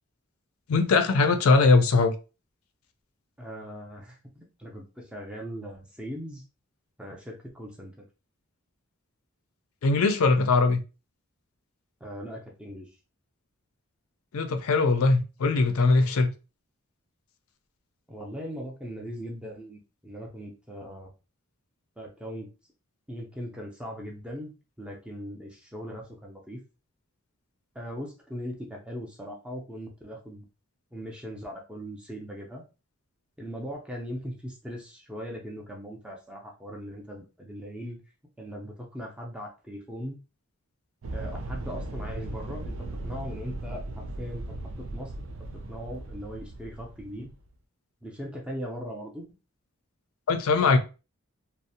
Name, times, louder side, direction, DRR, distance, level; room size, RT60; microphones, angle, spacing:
voice 1, 0.7-2.1 9.8-10.8 14.3-16.3 50.3-50.8, left 3 dB, 80° left, 0.4 m, -21 dB
voice 2, 3.4-6.4 7.0-8.1 12.0-12.9 18.1-21.1 22.0-22.5 23.1-26.6 27.7-30.4 30.9-32.6 33.4-38.0 38.4-40.2 41.1-42.7 43.0-45.1 45.7-47.3 48.0-49.3, equal, 5° right, 0.4 m, -39 dB
sound 1, 41.0-47.5, right 2 dB, 70° right, 0.4 m, -37 dB
2.5 x 2.0 x 2.7 m
head